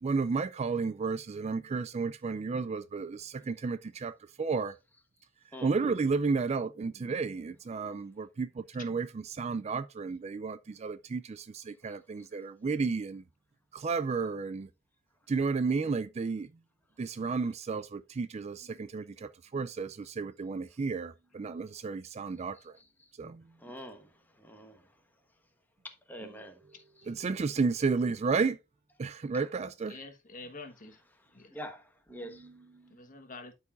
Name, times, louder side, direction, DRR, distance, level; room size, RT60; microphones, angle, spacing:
voice 1, 0.0-4.7 5.6-13.2 13.7-14.7 15.3-16.5 17.0-22.8 23.2-23.4 26.2-26.3 27.1-28.6 29.0-30.0 32.1-32.8, right 4 dB, 35° right, 0.3 m, -32 dB
voice 2, 23.6-24.1 24.4-24.8 25.8-26.6 31.5-31.8 32.1-32.4, equal, 10° left, 1.1 m, -44 dB
voice 3, 29.9-31.0 31.3-31.6 32.9-33.5, left 3 dB, 45° left, 1.3 m, -47 dB
12.0 x 4.8 x 2.5 m
head